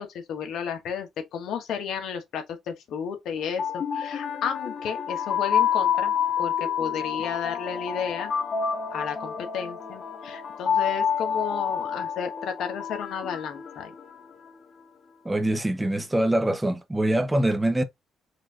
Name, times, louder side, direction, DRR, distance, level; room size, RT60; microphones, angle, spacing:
voice 1, 0.0-8.3 8.9-13.9, left 7 dB, 75° left, 1.3 m, -33 dB
sound 1, 3.4-14.5, left 8 dB, 50° left, 1.0 m, -28 dB
voice 2, 15.2-17.8, right 1 dB, 10° right, 0.9 m, -24 dB
4.9 x 2.7 x 3.7 m
cardioid pair, 90°, 0 cm